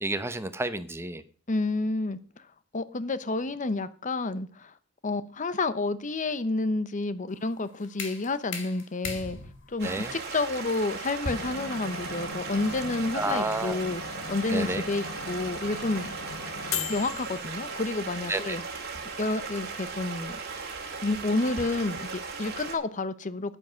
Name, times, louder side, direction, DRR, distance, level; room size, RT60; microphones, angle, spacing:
voice 1, 0.0-1.2 9.8-10.1 13.1-13.8 14.5-14.8 18.3-18.6, right 2 dB, 15° right, 10 dB, 0.9 m, -30 dB
voice 2, 1.5-2.2 2.7-4.7 5.0-9.4 9.7-14.0 14.3-16.1 16.9-18.6 19.2-20.4 21.0-23.6, left 2 dB, 40° left, 14 dB, 0.8 m, -30 dB
sound 1, 7.3-13.1, left 5 dB, 65° left, 2.4 m, -42 dB
Stream, 9.8-22.7, right 4 dB, 55° right, 2.7 m, -37 dB
sound 2, 11.4-17.9, left 5 dB, 80° left, 1.4 m, -39 dB
10.0 x 9.4 x 6.3 m, 0.40 s
head